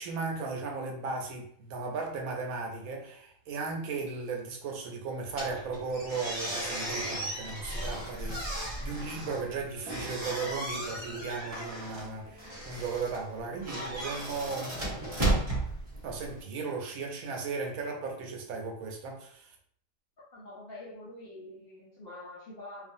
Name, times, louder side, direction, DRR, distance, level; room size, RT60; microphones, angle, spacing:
voice 1, 0.0-15.4 16.0-19.5, right 4 dB, 80° right, 1 dB, 1.0 m, -36 dB
sound 1, 5.3-16.4, right 1 dB, 30° right, 1.0 m, -35 dB
voice 2, 20.3-22.9, left 1 dB, 55° left, -5 dB, 0.7 m, -45 dB
2.4 x 2.4 x 2.6 m, 0.63 s
omnidirectional pair, 1.5 m